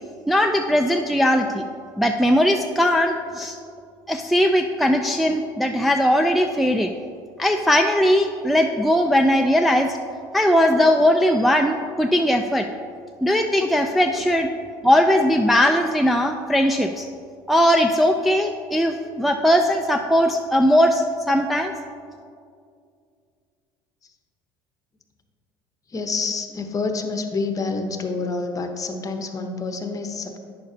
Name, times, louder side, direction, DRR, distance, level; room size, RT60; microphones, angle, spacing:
voice 1, 0.3-1.6 2.0-3.6 4.1-6.9 7.4-10.0 10.3-12.7 13.2-14.5 14.8-17.1 17.5-21.7, equal, ahead, 3 dB, 0.3 m, -19 dB
voice 2, 25.9-30.4, left 4 dB, 30° left, 6 dB, 0.8 m, -27 dB
9.4 x 6.4 x 2.7 m, 2.3 s
hypercardioid pair, 80°, 11 cm